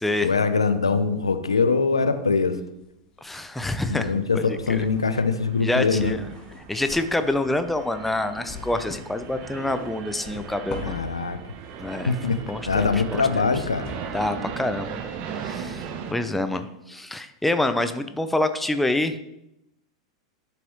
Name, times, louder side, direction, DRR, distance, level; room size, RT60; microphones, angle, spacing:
voice 1, 0.2-2.6 3.9-6.1 10.8-11.4 12.1-12.4 12.7-13.9, left 4 dB, 85° left, 10 dB, 0.6 m, -23 dB
sound 1, 1.0-2.1 2.4-16.2 16.6-16.7, left 5 dB, 35° left, 1.0 m, -43 dB
voice 2, 3.2-4.9 5.6-6.3 6.7-11.0 11.8-12.1 12.5-13.5 14.1-15.0 15.4-15.8 16.1-19.2, left 2 dB, 5° left, 9 dB, 0.6 m, -27 dB
sound 2, 4.5-16.1, right 7 dB, 45° right, 1.0 m, -38 dB
11.5 x 6.1 x 3.1 m, 0.86 s
figure-of-eight pair, 90°, 3 cm